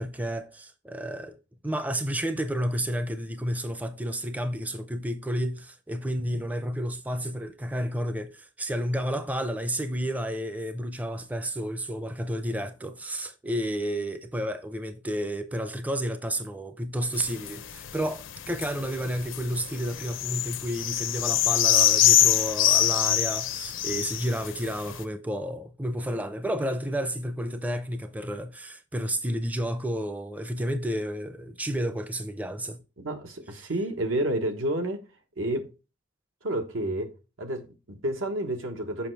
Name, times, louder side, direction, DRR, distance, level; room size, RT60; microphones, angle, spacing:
voice 1, 0.0-1.4 1.6-32.8 33.6-33.7, equal, 10° right, 0.4 m, -31 dB
sound 1, 17.1-25.0, left 11 dB, 80° left, 0.7 m, -25 dB
voice 2, 33.0-35.1 35.4-35.7 36.4-37.1 37.4-39.1, right 1 dB, 90° right, 1.2 m, -30 dB
6.9 x 5.4 x 3.3 m
head